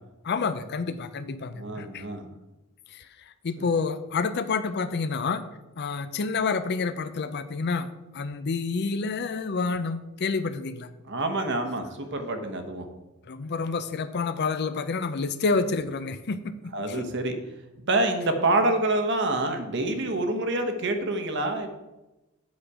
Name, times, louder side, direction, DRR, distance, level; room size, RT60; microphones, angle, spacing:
voice 1, 0.2-2.0 2.9-3.1 3.4-5.5 5.8-10.9 13.2-17.1, left 4 dB, 50° left, 12 dB, 0.5 m, -29 dB
voice 2, 1.5-2.3 3.6-3.7 11.1-12.9 16.7-17.4 17.8-21.7, right 2 dB, 55° right, 6 dB, 1.1 m, -27 dB
8.3 x 6.6 x 4.9 m, 1.0 s
head